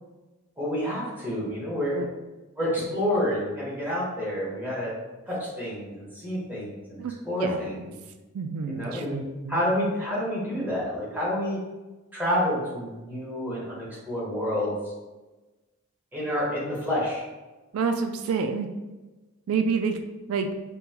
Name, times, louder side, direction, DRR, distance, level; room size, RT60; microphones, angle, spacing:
voice 1, 0.6-2.0 2.6-4.9 5.3-7.9 8.7-9.2 9.5-11.6 12.1-14.7 16.1-17.2, equal, 10° right, -7 dB, 1.3 m, -29 dB
voice 2, 7.4-7.7 8.3-9.6 17.7-18.7 19.5-20.0 20.3-20.5, right 5 dB, 85° right, 6 dB, 0.3 m, -28 dB
5.4 x 2.2 x 2.8 m, 1.2 s
head